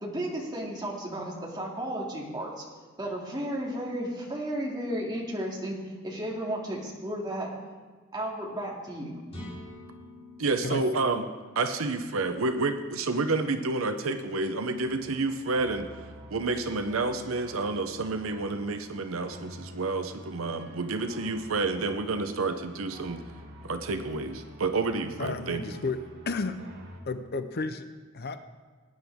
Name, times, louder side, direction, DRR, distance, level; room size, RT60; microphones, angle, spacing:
voice 1, 0.0-2.6 3.0-5.8 6.0-7.5 8.1-9.2, right 1 dB, 20° right, -3 dB, 2.5 m, -33 dB
sound 1, 9.3-13.1, left 1 dB, 30° left, 3.9 m, -47 dB
voice 2, 10.4-11.2 11.6-15.9 16.3-23.2 23.6-25.6, right 3 dB, 70° right, 8 dB, 0.8 m, -29 dB
sound 2, 14.7-27.0, equal, 50° right, 1.6 m, -48 dB
voice 3, 25.2-26.0 26.3-26.6 27.1-27.8 28.2-28.5, left 3 dB, 45° left, 10 dB, 0.6 m, -32 dB
18.5 x 9.9 x 3.6 m, 1.5 s
head